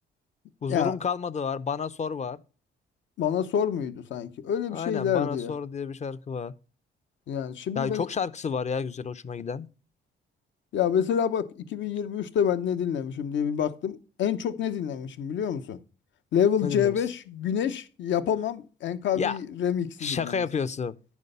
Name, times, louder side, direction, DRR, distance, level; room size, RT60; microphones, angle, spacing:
voice 1, 0.6-2.4 4.7-6.5 7.7-9.7 16.6-16.9 19.1-19.4 20.0-21.0, left 6 dB, 35° left, 0.6 m, -30 dB
voice 2, 3.2-5.5 7.3-8.1 10.7-15.8 16.3-20.4, left 8 dB, 70° left, 0.9 m, -27 dB
9.6 x 5.9 x 5.4 m
cardioid pair, 90°, 20 cm